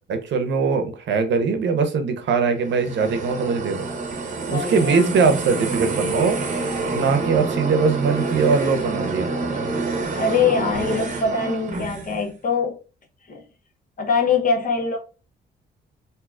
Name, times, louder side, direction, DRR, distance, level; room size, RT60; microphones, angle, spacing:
voice 1, 0.1-3.9 4.5-6.4 6.9-9.3, right 5 dB, 65° right, 0.8 m, -21 dB
sound 1, 2.5-12.3, right 3 dB, 40° right, 0.8 m, -27 dB
voice 2, 4.5-5.1 10.1-12.8 13.3-13.4 14.0-15.0, left 5 dB, 45° left, 0.9 m, -23 dB
3.7 x 2.7 x 2.3 m
cardioid pair, 90°, 20 cm